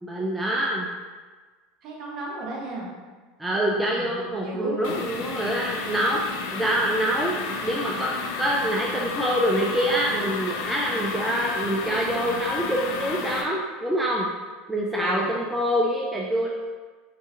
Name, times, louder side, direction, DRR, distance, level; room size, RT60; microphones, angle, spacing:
voice 1, 0.0-0.9 3.4-6.2 6.5-8.1 8.4-14.3 14.7-16.5, right 1 dB, 10° right, -3 dB, 0.4 m, -25 dB
voice 2, 1.8-2.9 3.7-5.0 14.9-15.2, right 1 dB, 45° right, -3 dB, 1.0 m, -34 dB
sound 1, 4.8-13.4, left 4 dB, 70° left, 0.4 m, -32 dB
3.6 x 2.6 x 2.5 m, 1.4 s
hypercardioid pair, 100°, 0 cm